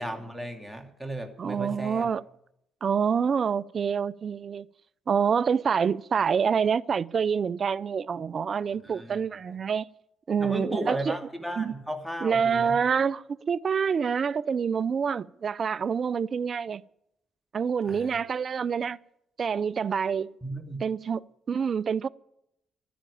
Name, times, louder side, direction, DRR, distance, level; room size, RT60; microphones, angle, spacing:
voice 1, 0.0-2.1 8.8-9.2 10.4-12.8 17.8-18.2 20.4-20.8, right 1 dB, ahead, 2.7 m, -35 dB
voice 2, 1.4-2.2 2.8-4.6 5.1-9.9 10.3-11.2 11.6-11.7 12.2-16.8 17.5-19.0 19.4-20.3 20.8-21.2 21.5-22.1, right 6 dB, 45° right, 0.5 m, -27 dB
12.5 x 10.5 x 8.5 m
cardioid pair, 90°, 0 cm